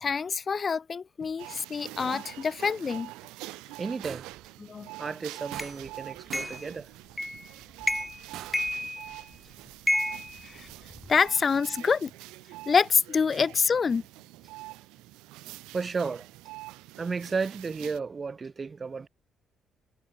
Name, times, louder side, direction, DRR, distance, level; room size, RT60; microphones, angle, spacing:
voice 1, 0.0-3.1 4.6-4.9 10.4-10.7 11.1-12.1 12.7-14.0, left 5 dB, 40° left, 1.0 m, -26 dB
sound 1, 1.4-18.0, right 20 dB, 90° right, 2.4 m, -45 dB
voice 2, 3.8-4.2 5.0-6.9 15.7-16.3 17.0-19.1, right 4 dB, 35° right, 1.2 m, -33 dB
sound 2, 4.0-4.5 5.5-6.0 6.3-6.7 8.3-8.8, right 12 dB, 75° right, 1.4 m, -43 dB
sound 3, 5.6-5.7 6.3-6.7 7.2-7.5 7.8-8.2 8.5-9.3 9.9-11.1, left 1 dB, 10° left, 1.0 m, -30 dB
supercardioid pair, 70°, 0 cm